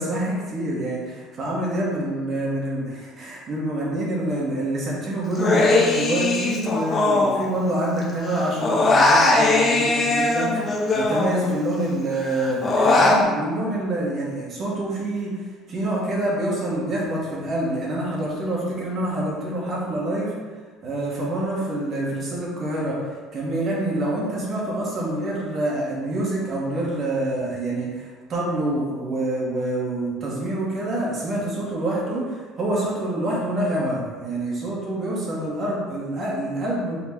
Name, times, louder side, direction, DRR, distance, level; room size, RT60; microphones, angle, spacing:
voice 1, 0.0-10.6 10.9-15.3 15.7-20.3 20.8-23.0 23.3-37.0, right 1 dB, 40° right, -5 dB, 1.3 m, -26 dB
Human voice, 5.3-8.0 8.3-11.8 12.1-13.2, left 2 dB, 25° left, 0.5 m, -20 dB
4.3 x 3.9 x 2.9 m, 1.4 s
cardioid pair, 140°, 0 cm